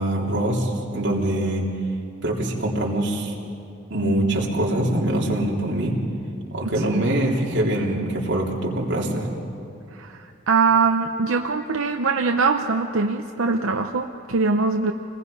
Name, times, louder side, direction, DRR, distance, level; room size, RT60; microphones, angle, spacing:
voice 1, 0.0-1.6 2.2-3.3 3.9-6.0 6.5-9.3, right 1 dB, 60° right, -3 dB, 3.2 m, -23 dB
voice 2, 6.7-7.1 9.9-14.9, right 4 dB, 90° right, 4 dB, 0.8 m, -22 dB
28.0 x 20.0 x 5.5 m, 2.5 s
head